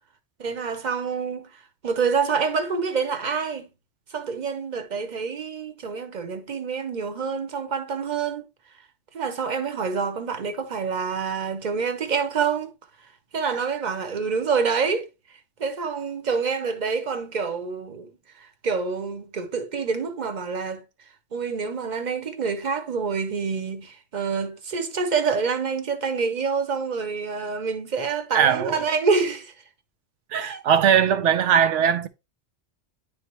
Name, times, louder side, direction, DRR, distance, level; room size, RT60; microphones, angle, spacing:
voice 1, 0.4-1.5 1.8-3.7 4.1-8.5 9.1-12.7 13.3-15.1 15.6-18.1 18.4-20.8 21.3-29.5 30.3-30.6, right 5 dB, 45° right, 0.9 m, -27 dB
voice 2, 28.3-28.8 30.3-32.1, right 8 dB, 85° right, 1.0 m, -20 dB
10.0 x 3.5 x 3.0 m
omnidirectional pair, 1.2 m